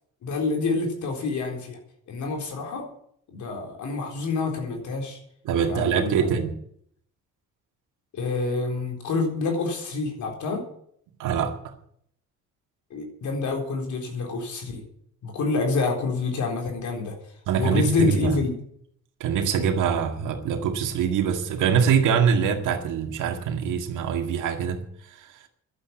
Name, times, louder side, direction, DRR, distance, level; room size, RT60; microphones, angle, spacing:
voice 1, 0.2-1.8 2.1-2.9 3.3-5.2 5.6-6.4 8.1-10.6 12.9-14.8 15.2-17.2 17.6-18.5, left 3 dB, 75° left, 2 dB, 4.1 m, -27 dB
voice 2, 5.5-6.6 11.2-11.6 17.5-18.4 19.2-25.3, right 7 dB, 85° right, 4 dB, 2.0 m, -24 dB
11.5 x 8.8 x 9.6 m, 0.67 s
cardioid pair, 90°, 30 cm